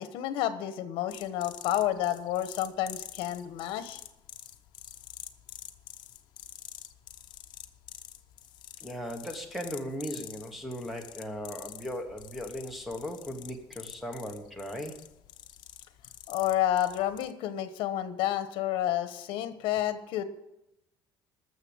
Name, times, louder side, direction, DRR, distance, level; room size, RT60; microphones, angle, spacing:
voice 1, 0.0-4.0 16.3-20.2, left 12 dB, 70° left, 11 dB, 1.2 m, -30 dB
sound 1, 1.1-17.3, left 12 dB, 55° left, 0.8 m, -47 dB
voice 2, 8.8-15.0, equal, ahead, 5 dB, 1.3 m, -37 dB
13.5 x 6.5 x 8.7 m, 0.90 s
cardioid pair, 180°, 9 cm